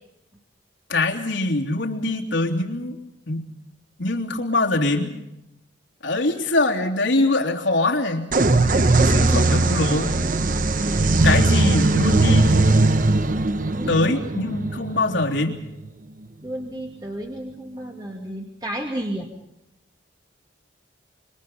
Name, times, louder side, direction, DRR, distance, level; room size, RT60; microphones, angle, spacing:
voice 1, 0.9-3.0 3.3-3.5 4.0-5.2 6.0-8.5 9.0-10.1 11.2-12.7 13.9-15.6, left 2 dB, 70° left, 1 dB, 3.3 m, -23 dB
sound 1, 8.3-15.9, right 2 dB, 40° right, 1.0 m, -19 dB
voice 2, 8.9-9.4 13.7-14.2 16.4-19.3, right 1 dB, 20° right, 0 dB, 2.4 m, -32 dB
27.5 x 25.5 x 5.5 m, 0.88 s
head